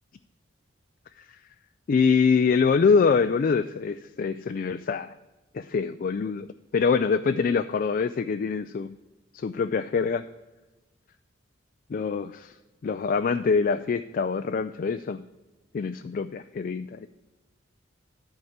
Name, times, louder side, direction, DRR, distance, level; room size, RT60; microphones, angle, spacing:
voice 1, 1.9-5.1 5.5-6.5 6.7-8.9 9.3-10.3 11.9-12.5 12.8-15.2 15.7-17.1, left 5 dB, 45° left, 10 dB, 0.3 m, -24 dB
10.5 x 4.7 x 7.2 m, 1.1 s
head